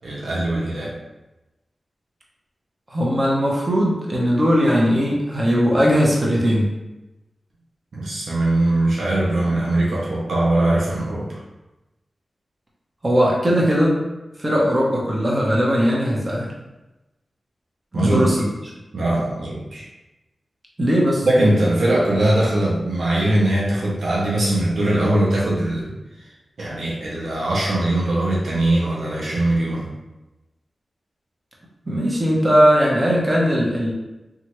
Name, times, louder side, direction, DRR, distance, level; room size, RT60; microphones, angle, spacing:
voice 1, 0.0-1.0 7.9-11.4 17.9-18.3 18.9-19.9 21.2-25.9 26.2-26.3 26.6-29.9, right 1 dB, 80° right, -5 dB, 0.6 m, -21 dB
voice 2, 2.9-6.7 13.0-14.0 14.4-16.5 17.9-18.4 20.8-21.3 31.9-33.9, equal, 35° right, -3 dB, 0.8 m, -19 dB
2.9 x 2.4 x 2.9 m, 1.0 s
cardioid pair, 45°, 0 cm